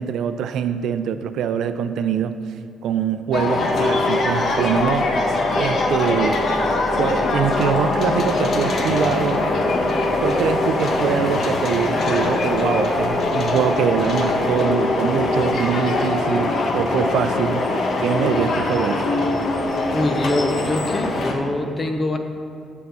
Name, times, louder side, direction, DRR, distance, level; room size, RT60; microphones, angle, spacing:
voice 1, 0.0-2.4 2.8-5.1 5.6-6.4 7.0-9.4 10.2-17.6 18.0-19.0, right 8 dB, 80° right, 10 dB, 0.4 m, -23 dB
sound 1, 3.3-21.3, left 2 dB, 60° left, 1.0 m, -22 dB
voice 2, 19.9-22.2, left 1 dB, 30° left, 6 dB, 0.8 m, -24 dB
7.2 x 6.8 x 5.4 m, 2.2 s
cardioid pair, 90°, 0 cm